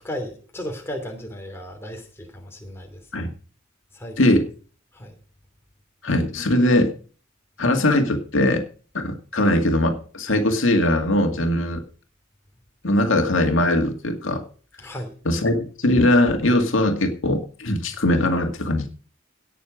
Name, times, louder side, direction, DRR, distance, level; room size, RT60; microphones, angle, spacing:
voice 1, 0.0-3.0 3.9-4.2 4.9-5.1 14.8-15.2, equal, 10° left, 2 dB, 3.0 m, -35 dB
voice 2, 4.2-4.5 6.0-6.9 7.6-8.6 8.9-11.8 12.8-14.4 15.2-18.9, left 1 dB, 70° left, 4 dB, 2.2 m, -20 dB
18.0 x 7.0 x 5.0 m, 0.40 s
head